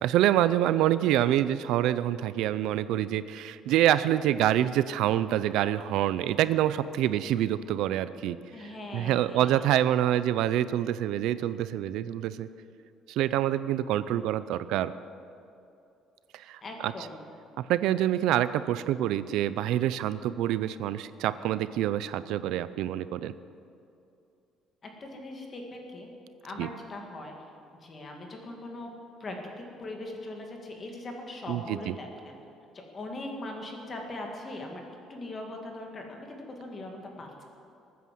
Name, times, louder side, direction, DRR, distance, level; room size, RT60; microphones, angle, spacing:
voice 1, 0.0-8.4 8.9-12.5 13.1-14.9 16.3-16.9 17.6-23.3 26.6-26.7 31.5-31.9, right 12 dB, 75° right, 14 dB, 0.5 m, -26 dB
voice 2, 3.7-4.1 8.5-9.7 16.6-17.3 24.8-26.1 26.4-27.5 27.7-28.9 29.2-32.4 32.7-34.8 35.1-37.4, left 2 dB, 25° left, 2 dB, 2.1 m, -40 dB
20.0 x 9.3 x 7.7 m, 2.6 s
cardioid pair, 175°, 0 cm